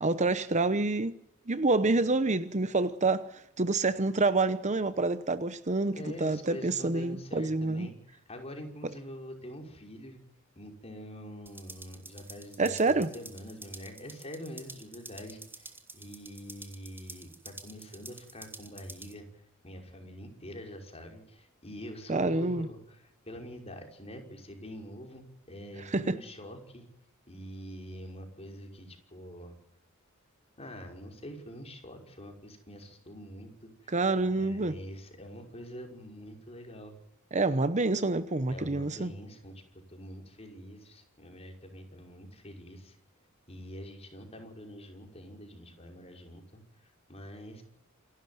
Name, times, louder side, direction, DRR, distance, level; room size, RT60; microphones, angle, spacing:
voice 1, 0.0-1.1 1.5-7.9 12.6-13.1 22.1-22.7 25.9-26.2 33.9-34.7 37.3-39.1, right 3 dB, 35° right, 0.9 m, -27 dB
voice 2, 5.9-10.2 10.6-26.9 27.3-29.5 30.6-37.0 38.5-43.0 43.5-47.6, equal, 30° left, 5.6 m, -45 dB
sound 1, 11.5-19.1, right 3 dB, 10° right, 3.0 m, -49 dB
28.0 x 12.5 x 9.5 m
head